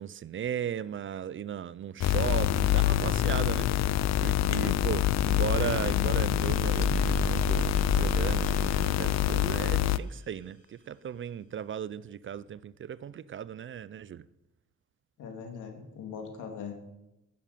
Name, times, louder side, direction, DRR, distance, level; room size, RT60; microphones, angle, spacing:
voice 1, 0.0-3.7 4.2-14.2, right 9 dB, 40° right, 0.5 m, -36 dB
sound 1, 2.0-10.0, left 13 dB, 60° left, 0.5 m, -26 dB
sound 2, 6.3-9.9, left 2 dB, 25° left, 3.8 m, -31 dB
voice 2, 15.2-16.7, left 6 dB, 80° left, 2.9 m, -41 dB
12.0 x 7.4 x 9.2 m
cardioid pair, 90°, 30 cm